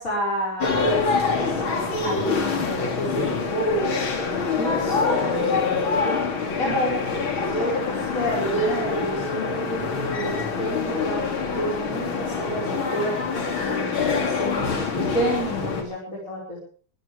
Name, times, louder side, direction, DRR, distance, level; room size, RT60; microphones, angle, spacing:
voice 1, 0.0-4.2 4.5-5.5 6.6-7.0 7.5-11.3 11.5-14.8 15.1-16.6, equal, 40° left, -5 dB, 6.0 m, -30 dB
sound 1, 0.6-15.8, left 4 dB, 85° left, 3.5 m, -25 dB
22.5 x 15.5 x 3.4 m, 0.42 s
omnidirectional pair, 2.2 m